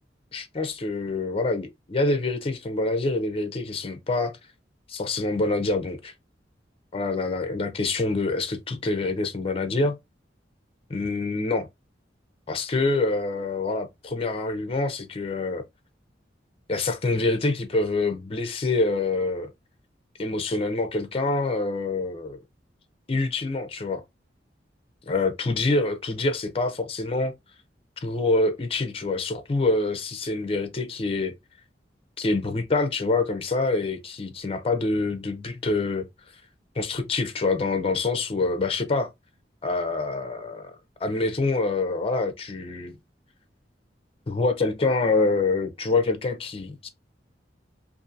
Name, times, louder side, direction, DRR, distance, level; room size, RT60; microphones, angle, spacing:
voice 1, 0.3-4.3 4.9-6.1 6.9-10.0 10.9-11.7 12.5-15.6 16.7-19.5 20.2-22.4 23.1-24.0 25.1-27.3 28.0-31.3 32.2-36.1 36.8-39.1 39.6-40.7 41.0-42.9 44.3-46.9, left 3 dB, 35° left, 0.5 m, -26 dB
2.6 x 2.5 x 2.4 m
head